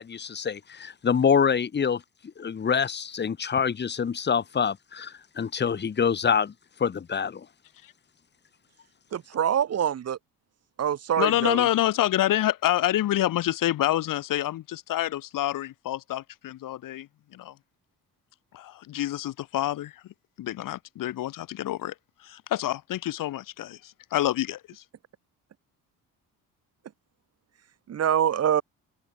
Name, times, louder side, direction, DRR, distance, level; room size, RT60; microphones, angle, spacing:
voice 1, 0.0-2.0 2.4-6.5 6.8-7.5, left 6 dB, 30° left, 1.8 m, -26 dB
voice 2, 9.1-10.2 10.8-11.7 27.9-28.6, right 9 dB, 45° right, 1.8 m, -25 dB
voice 3, 11.2-17.1 17.3-17.5 18.5-19.9 20.4-21.9 22.2-24.8, left 13 dB, 70° left, 3.5 m, -27 dB
open air
cardioid pair, 115°, 34 cm